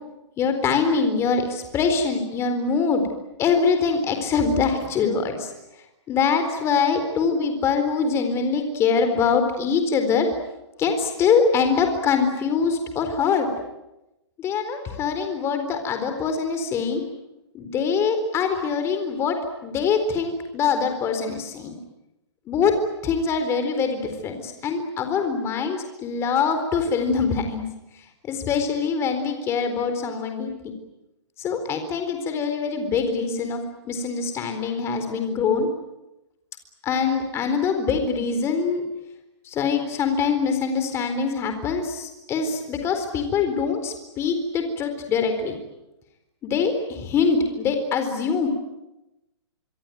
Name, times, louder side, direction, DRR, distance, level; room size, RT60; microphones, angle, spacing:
voice 1, 0.4-3.0 3.4-5.5 6.1-10.3 10.8-13.5 14.4-17.0 17.5-19.4 19.6-21.8 22.5-22.7 23.0-27.6 28.3-30.7 31.4-33.6 33.9-35.7 36.8-38.8 39.5-45.5 46.4-48.5, left 5 dB, 15° left, 7 dB, 4.1 m, -23 dB
25.5 x 25.0 x 9.4 m, 0.96 s
hypercardioid pair, 155°, 15 cm